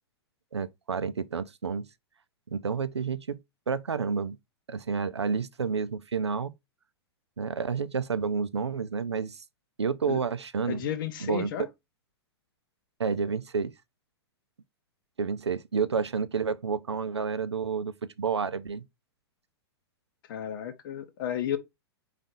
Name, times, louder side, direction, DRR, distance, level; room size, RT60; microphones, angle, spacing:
voice 1, 0.5-1.9 2.5-3.4 3.7-4.4 4.7-6.5 7.4-9.4 9.8-10.8 11.2-11.5 13.0-13.7 15.2-18.8, right 5 dB, 80° right, 0.5 m, -30 dB
voice 2, 10.6-11.7 20.3-21.6, left 10 dB, 55° left, 0.7 m, -32 dB
4.1 x 3.3 x 3.8 m
figure-of-eight pair, 105°, 14 cm